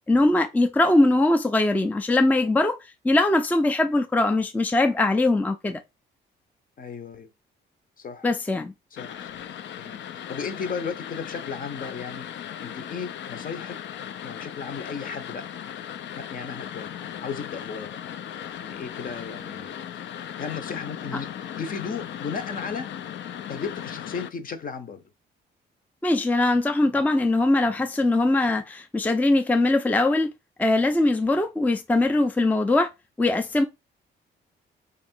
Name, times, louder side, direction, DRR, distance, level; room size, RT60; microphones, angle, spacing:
voice 1, 0.1-2.8 3.0-5.8 8.2-8.7 26.0-30.3 30.6-32.9 33.2-33.6, left 2 dB, 10° left, 0.4 m, -21 dB
voice 2, 6.8-7.3 8.0-8.3 8.9-9.5 9.8-13.8 14.2-15.5 16.1-18.0 18.6-19.8 20.4-22.9 23.5-25.0, left 5 dB, 45° left, 0.8 m, -35 dB
sound 1, 9.0-24.3, left 10 dB, 65° left, 0.5 m, -37 dB
3.0 x 2.6 x 4.4 m
cardioid pair, 90°, 20 cm